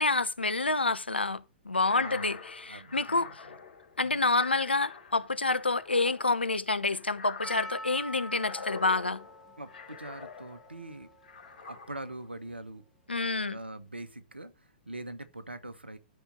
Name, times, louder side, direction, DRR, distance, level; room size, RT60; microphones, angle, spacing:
voice 1, 0.0-1.4 1.7-3.3 4.0-9.2 13.1-13.6, left 3 dB, 80° left, 0.7 m, -28 dB
sound 1, 1.7-10.8 11.2-12.3, left 5 dB, 65° left, 3.6 m, -46 dB
voice 2, 1.9-3.3 4.0-4.2 9.6-11.1 11.6-12.8 13.4-16.0, right 1 dB, 85° right, 1.3 m, -43 dB
Percussion, 7.4-12.4, left 1 dB, 5° right, 2.8 m, -46 dB
13.0 x 4.4 x 6.5 m
figure-of-eight pair, 110°, 6 cm